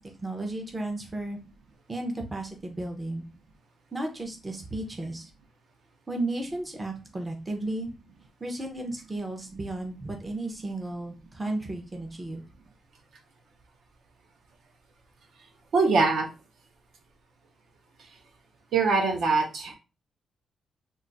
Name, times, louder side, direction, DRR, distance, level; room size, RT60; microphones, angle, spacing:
voice 1, 0.2-1.4 1.9-3.3 3.9-5.3 6.1-7.9 8.4-12.5, right 2 dB, 15° right, 2 dB, 0.5 m, -34 dB
voice 2, 15.7-16.3 18.7-19.7, right 4 dB, 60° right, 4 dB, 0.6 m, -23 dB
2.3 x 2.3 x 3.9 m, 0.30 s
wide cardioid pair, 170°, 0 cm